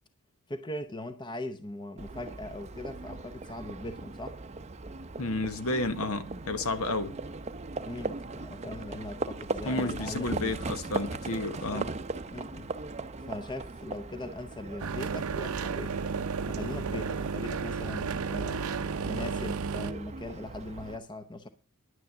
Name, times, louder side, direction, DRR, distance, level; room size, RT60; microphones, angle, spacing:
voice 1, 0.5-4.4 7.8-10.6 11.5-11.9 12.3-12.7 13.2-16.0 16.5-21.5, left 1 dB, 20° left, 0.7 m, -40 dB
Livestock farm animals working animals, 2.0-21.0, right 3 dB, 30° right, 0.6 m, -39 dB
voice 2, 5.2-7.2 9.7-11.9, left 2 dB, 70° left, 1.1 m, -31 dB
sound 1, 14.8-19.9, right 5 dB, 75° right, 0.7 m, -33 dB
10.5 x 9.4 x 7.1 m
head